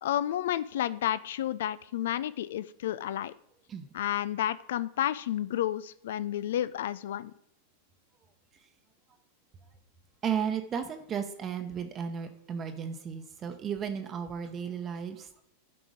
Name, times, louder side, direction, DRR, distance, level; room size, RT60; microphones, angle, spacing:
voice 1, 0.0-3.3 3.9-7.3, left 12 dB, 60° left, 17 dB, 0.3 m, -31 dB
voice 2, 10.2-15.4, right 7 dB, 25° right, 7 dB, 0.9 m, -34 dB
12.0 x 5.0 x 5.0 m, 0.72 s
figure-of-eight pair, 90°, 0 cm